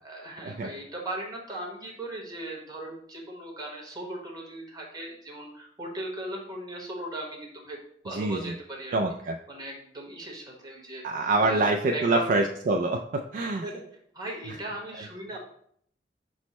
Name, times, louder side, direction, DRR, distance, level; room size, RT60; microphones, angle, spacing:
voice 1, 0.0-7.8 8.0-8.9 9.5-11.0 11.4-12.3 13.6-13.8 14.1-15.4, right 1 dB, 20° right, -2 dB, 1.2 m, -38 dB
voice 2, 8.1-8.5 8.9-9.4 11.0-13.7, right 2 dB, 50° right, 3 dB, 0.3 m, -26 dB
6.2 x 2.1 x 4.1 m, 0.65 s
head